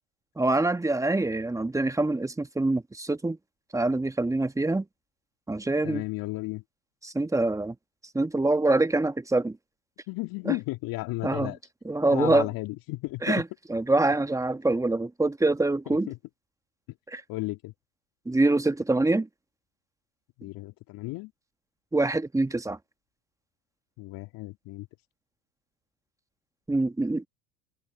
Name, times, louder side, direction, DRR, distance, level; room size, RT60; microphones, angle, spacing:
voice 1, 0.4-3.4 3.7-4.8 5.5-6.0 7.0-7.7 8.1-9.6 10.4-10.6 11.2-11.5 11.8-12.5 13.2-16.1 17.1-17.2 18.2-19.3 21.9-22.8 26.7-27.3, right 2 dB, 10° right, 1.4 m, -25 dB
voice 2, 5.8-6.6 10.1-11.6 12.1-13.4 16.1-16.2 17.3-17.7 20.4-21.3 24.0-24.9, left 20 dB, 55° left, 2.1 m, -33 dB
hypercardioid pair, 75°, 40 cm